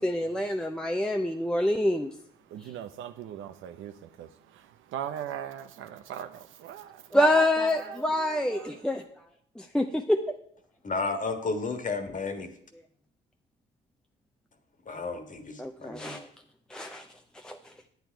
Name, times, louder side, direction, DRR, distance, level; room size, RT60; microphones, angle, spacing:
voice 1, 0.0-2.1 7.1-9.0 9.6-10.2 15.6-16.2 16.7-17.0 17.4-17.6, left 1 dB, 5° left, 4 dB, 0.6 m, -26 dB
voice 2, 0.7-1.7 2.4-7.3 7.6-8.9, right 10 dB, 85° right, 10 dB, 0.9 m, -41 dB
voice 3, 10.8-12.5 14.9-16.2, left 3 dB, 40° left, 6 dB, 1.6 m, -32 dB
9.4 x 9.3 x 4.6 m, 0.66 s
cardioid pair, 90°, 20 cm